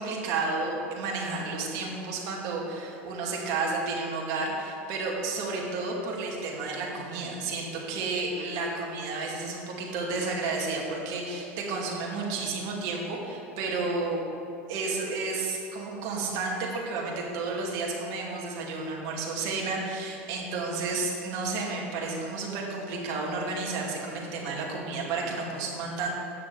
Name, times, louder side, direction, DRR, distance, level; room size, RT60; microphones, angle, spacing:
voice 1, 0.0-14.2 14.7-26.1, right 3 dB, 60° right, -2 dB, 2.5 m, -31 dB
9.3 x 6.7 x 7.2 m, 2.8 s
hypercardioid pair, 95°, 7 cm